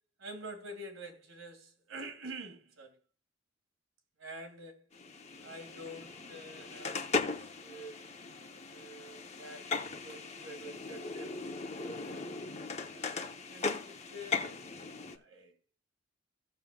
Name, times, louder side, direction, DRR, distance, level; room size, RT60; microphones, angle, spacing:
voice 1, 0.2-3.0 4.2-4.8 5.4-8.1 8.7-11.4 11.7-12.3 12.9-13.2 13.5-14.6 15.0-15.5, right 1 dB, 90° right, 2.2 m, -47 dB
sound 1, 4.9-15.2, left 4 dB, 35° left, 0.9 m, -38 dB
16.0 x 7.2 x 2.3 m
head